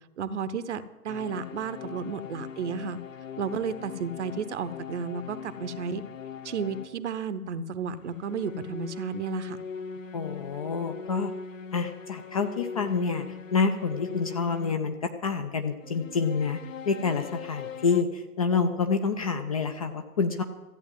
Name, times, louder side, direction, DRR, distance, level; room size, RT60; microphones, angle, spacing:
voice 1, 0.2-3.0 3.4-6.0 6.4-9.6, right 5 dB, 50° right, 13 dB, 0.9 m, -32 dB
sound 1, 1.1-7.0 8.0-15.0 15.8-18.0, left 6 dB, 55° left, 0.9 m, -41 dB
voice 2, 10.1-11.3 11.7-13.3 13.5-16.6 16.8-20.4, left 5 dB, 25° left, 6 dB, 0.5 m, -27 dB
14.0 x 8.6 x 7.5 m, 1.2 s
figure-of-eight pair, 120°, 46 cm